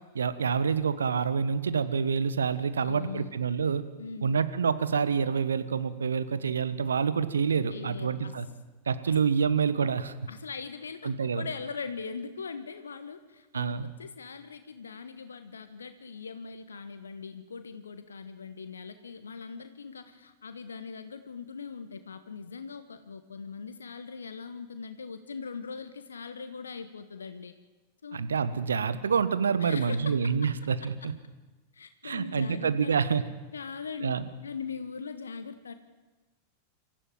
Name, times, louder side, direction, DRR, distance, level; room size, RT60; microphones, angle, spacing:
voice 1, 0.1-3.8 4.2-8.5 8.9-10.1 11.0-11.4 13.5-13.9 28.1-31.1 32.0-33.2 34.0-34.3, right 6 dB, 70° right, 13 dB, 1.3 m, -27 dB
voice 2, 2.8-3.3 4.0-4.5 7.7-8.4 9.0-9.1 10.3-27.5 28.0-28.2 29.6-30.3 31.7-33.1 33.5-34.1 34.4-35.7, left 5 dB, 70° left, 10 dB, 1.4 m, -41 dB
25.5 x 15.0 x 9.1 m, 1.2 s
figure-of-eight pair, 90°, 0 cm